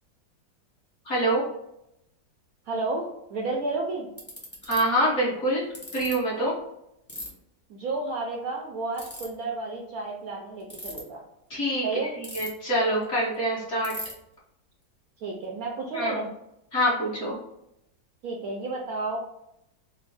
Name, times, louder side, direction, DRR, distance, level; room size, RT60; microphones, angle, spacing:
voice 1, 1.0-1.4 4.6-5.7 5.9-6.5 11.5-11.9 12.2-13.9 15.9-16.2 16.7-17.4, right 1 dB, 40° left, -6 dB, 1.5 m, -25 dB
voice 2, 2.7-4.1 7.7-11.2 11.8-12.2 15.2-16.3 18.2-19.2, right 3 dB, 70° right, -1 dB, 0.9 m, -31 dB
Ratchet pawl, 4.2-4.8 5.7-6.1 7.1-7.3 8.9-9.2 10.6-11.0 12.2-12.7 13.0-13.1 13.3-13.4 13.8-14.1, equal, 10° left, 0.7 m, -37 dB
4.3 x 2.1 x 4.0 m, 0.83 s
omnidirectional pair, 2.0 m